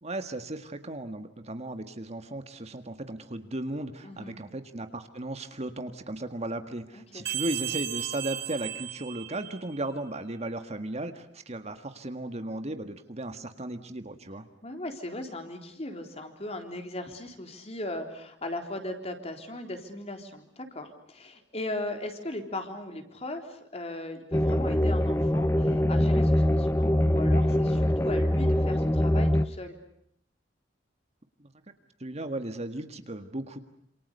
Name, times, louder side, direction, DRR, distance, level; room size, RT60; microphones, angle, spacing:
voice 1, 0.0-14.5 32.0-33.6, right 1 dB, 35° right, 8 dB, 1.8 m, -36 dB
voice 2, 4.0-4.4 6.9-7.3 14.6-29.8, left 1 dB, 35° left, 5 dB, 3.8 m, -38 dB
sound 1, 7.3-9.8, right 12 dB, 70° right, 4.3 m, -35 dB
sound 2, 24.3-29.5, left 1 dB, 15° left, 1.0 m, -23 dB
28.0 x 27.5 x 6.7 m, 0.73 s
head